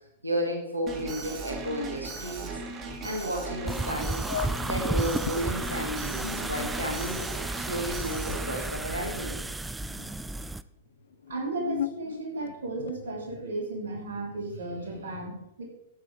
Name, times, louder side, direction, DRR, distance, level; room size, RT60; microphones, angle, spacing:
voice 1, 0.2-2.5 3.0-4.2 4.7-7.2 7.5-9.5, equal, 90° right, 1 dB, 2.4 m, -32 dB
Alarm, 0.9-8.7, right 3 dB, 30° right, 2.4 m, -38 dB
sound 1, 3.7-3.8 4.2-5.4 6.0-9.5 9.8-10.5 11.1-13.1, left 10 dB, 65° left, 0.4 m, -38 dB
sound 2, 3.7-10.6, right 2 dB, 5° right, 0.5 m, -33 dB
voice 2, 11.3-15.6, right 2 dB, 70° right, 1 dB, 3.4 m, -34 dB
11.5 x 9.2 x 4.9 m, 0.80 s
figure-of-eight pair, 100°, 0 cm